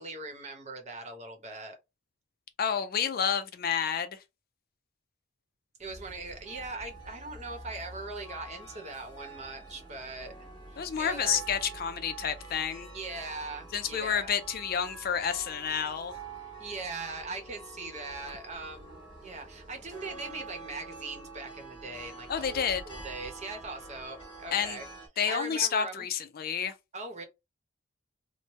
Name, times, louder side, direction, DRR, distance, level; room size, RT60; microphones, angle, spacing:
voice 1, 0.0-1.8 5.8-10.3 10.7-11.4 12.9-14.3 16.6-24.8 25.3-26.1 26.9-27.2, right 3 dB, 40° right, 0.9 m, -40 dB
voice 2, 2.6-4.2 10.8-12.9 13.7-16.1 22.3-22.8 24.5-24.8 25.2-26.7, left 7 dB, 50° left, 0.4 m, -30 dB
sound 1, 5.8-25.1, right 3 dB, 25° left, 1.2 m, -46 dB
3.1 x 2.1 x 3.0 m
head